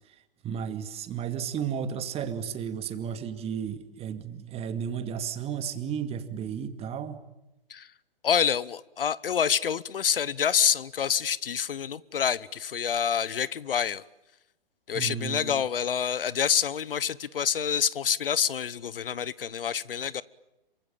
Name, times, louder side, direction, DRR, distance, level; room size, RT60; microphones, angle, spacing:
voice 1, 0.4-7.2 14.9-15.6, right 8 dB, 20° right, 10 dB, 2.3 m, -33 dB
voice 2, 8.2-14.0 14.9-20.2, left 8 dB, 65° left, 21 dB, 1.1 m, -27 dB
27.5 x 24.5 x 8.9 m, 0.91 s
figure-of-eight pair, 120°, 30 cm